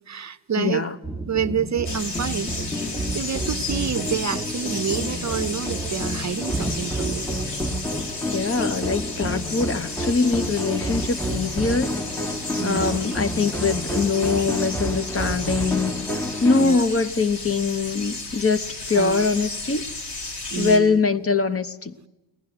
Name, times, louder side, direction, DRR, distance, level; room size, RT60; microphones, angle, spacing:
voice 1, 0.1-0.8 1.3-2.5 3.1-7.3 12.6-13.0 16.6-16.8 18.9-19.3 20.5-21.0, right 8 dB, 40° right, 0.7 m, -28 dB
voice 2, 0.6-1.0 8.3-11.9 12.6-16.0 16.4-19.9 20.5-22.0, left 4 dB, 30° left, 1.0 m, -23 dB
sound 1, 1.0-16.7, equal, 5° left, 1.6 m, -29 dB
sound 2, 1.8-20.8, left 3 dB, 65° left, 4.2 m, -33 dB
22.0 x 19.0 x 7.9 m
cardioid pair, 85°, 44 cm